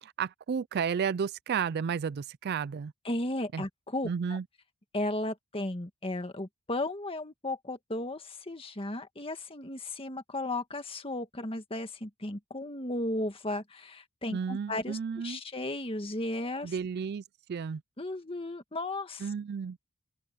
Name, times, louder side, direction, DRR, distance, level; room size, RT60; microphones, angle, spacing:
voice 1, 0.0-2.9 3.5-3.7 4.0-4.4 14.3-15.4 16.6-17.2 17.5-17.8 19.2-19.8, right 6 dB, 45° right, 0.3 m, -32 dB
voice 2, 3.1-4.4 4.9-15.0 15.2-16.7 18.0-19.3, left 1 dB, 25° left, 1.8 m, -35 dB
open air
head